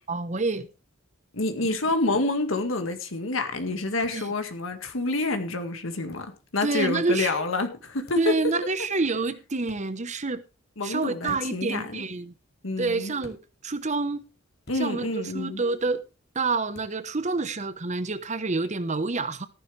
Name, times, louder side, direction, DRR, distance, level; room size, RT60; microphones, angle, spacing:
voice 1, 0.1-0.7 4.1-4.3 6.6-7.3 8.2-10.4 10.8-12.3 12.8-14.2 14.8-16.0 16.3-19.5, right 3 dB, 35° right, 1.0 m, -28 dB
voice 2, 1.3-8.3 10.8-12.0 12.6-13.1 14.7-15.6, left 2 dB, 80° left, 1.9 m, -28 dB
sound 1, 2.1-2.3 4.0-4.2 6.1-6.3 8.0-8.4 9.6-9.8 11.2-11.7 13.2-13.4 14.6-14.9 16.7-16.9, left 1 dB, 55° left, 2.5 m, -48 dB
14.5 x 11.0 x 3.3 m
head